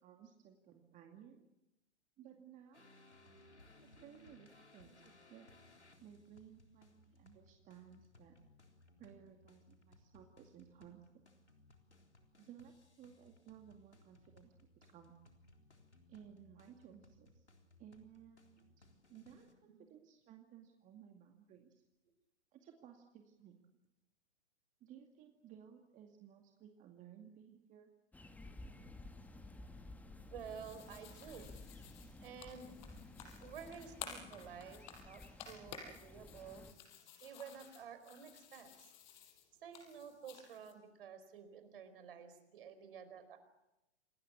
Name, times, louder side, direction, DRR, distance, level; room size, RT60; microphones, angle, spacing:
voice 1, 0.0-1.5 2.2-2.9 3.8-5.5 6.0-8.3 9.0-11.1 12.4-14.6 14.9-15.1 16.1-17.5 17.8-21.8 22.5-23.6 24.8-27.9, right 9 dB, 20° right, 4 dB, 2.3 m, -58 dB
sound 1, 2.7-19.5, left 2 dB, 80° left, 3.9 m, -65 dB
sound 2, 28.1-36.7, left 2 dB, 5° left, 1.7 m, -54 dB
sound 3, 30.3-40.7, left 7 dB, 40° left, 5.5 m, -54 dB
voice 2, 30.3-31.5 32.2-32.8 33.4-36.6 37.2-38.9 39.6-43.4, right 7 dB, 55° right, 10 dB, 4.7 m, -51 dB
28.0 x 20.0 x 8.6 m, 0.91 s
figure-of-eight pair, 110°, 34 cm